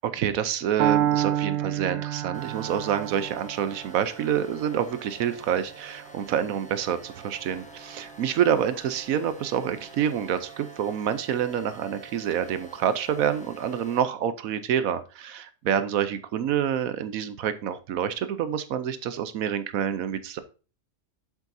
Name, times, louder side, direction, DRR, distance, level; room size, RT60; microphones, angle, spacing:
voice 1, 0.0-20.4, right 9 dB, 85° right, 12 dB, 1.2 m, -27 dB
Piano, 0.8-8.7, right 11 dB, 60° right, 0.7 m, -31 dB
sound 1, 2.3-14.0, right 3 dB, 5° left, 1.3 m, -47 dB
7.7 x 7.3 x 2.6 m, 0.34 s
omnidirectional pair, 1.4 m